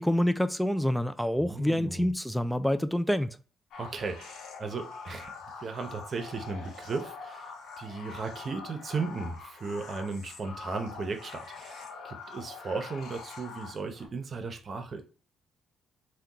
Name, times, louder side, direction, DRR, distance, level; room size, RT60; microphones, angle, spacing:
voice 1, 0.0-3.4, left 1 dB, ahead, 0.3 m, -27 dB
voice 2, 1.4-2.1 3.8-5.3 5.6-15.0, right 4 dB, 45° right, 0.7 m, -36 dB
sound 1, 3.7-14.1, left 4 dB, 80° left, 0.6 m, -44 dB
2.8 x 2.3 x 3.7 m
cardioid pair, 90°, 0 cm